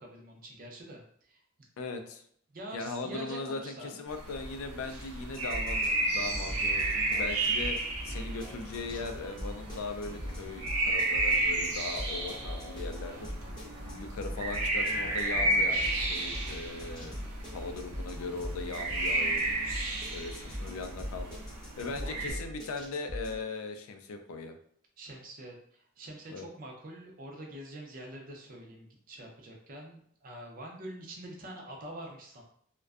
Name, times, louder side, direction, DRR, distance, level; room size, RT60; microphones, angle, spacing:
voice 1, 0.0-1.4 2.5-4.0 13.1-13.3 21.8-22.5 25.0-32.4, right 1 dB, 40° right, 0 dB, 0.4 m, -45 dB
voice 2, 1.8-2.2 2.7-7.8 8.0-13.3 13.8-17.2 17.5-19.5 20.1-21.4 21.8-24.5 26.3-26.5, left 3 dB, 75° left, 6 dB, 0.3 m, -39 dB
sound 1, 4.1-22.3, right 2 dB, 90° right, 0.5 m, -32 dB
sound 2, 5.3-23.4, equal, 20° left, 0.6 m, -41 dB
2.5 x 2.1 x 2.3 m, 0.63 s
head